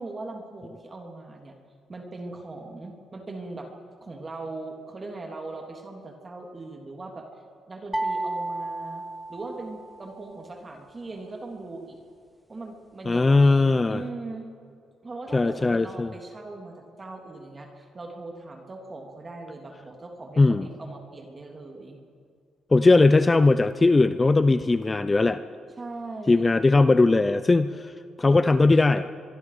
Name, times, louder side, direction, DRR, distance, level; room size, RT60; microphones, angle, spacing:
voice 1, 0.0-1.5 1.9-3.7 4.0-7.3 7.7-9.0 9.3-12.0 12.5-14.5 15.0-22.0 25.8-26.6, right 2 dB, 30° right, 2 dB, 3.3 m, -39 dB
sound 1, 7.9-10.1, right 2 dB, 10° right, 1.0 m, -32 dB
voice 2, 13.1-14.0 15.3-16.1 20.4-20.7 22.7-25.4 26.3-27.9 28.2-29.1, left 3 dB, 25° left, 12 dB, 0.7 m, -19 dB
25.0 x 23.0 x 5.1 m, 2.4 s
cardioid pair, 90°, 0 cm